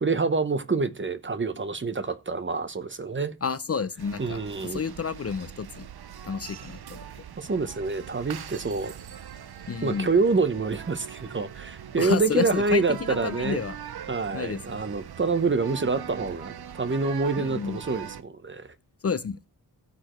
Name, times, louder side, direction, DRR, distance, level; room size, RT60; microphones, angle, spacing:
voice 1, 0.0-3.3 4.2-4.8 7.4-8.9 9.8-13.6 14.1-18.7, right 4 dB, 30° right, 0.8 m, -27 dB
voice 2, 3.4-5.9 6.2-7.0 9.7-10.1 12.0-13.8 14.3-14.8 17.4-17.8 19.0-19.4, left 6 dB, 40° left, 0.5 m, -30 dB
sound 1, 4.0-18.2, right 9 dB, 80° right, 0.7 m, -42 dB
15.5 x 6.8 x 3.1 m
wide cardioid pair, 130°, 38 cm